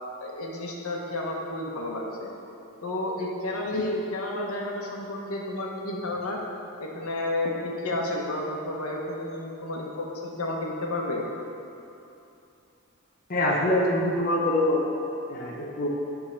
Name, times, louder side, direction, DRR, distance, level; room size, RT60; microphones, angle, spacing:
voice 1, 0.2-2.3 2.8-6.4 6.8-11.2, left 1 dB, 85° left, -1 dB, 1.1 m, -31 dB
voice 2, 13.3-14.9 15.3-15.9, left 1 dB, 40° left, -2 dB, 0.9 m, -24 dB
9.8 x 3.7 x 6.5 m, 2.8 s
head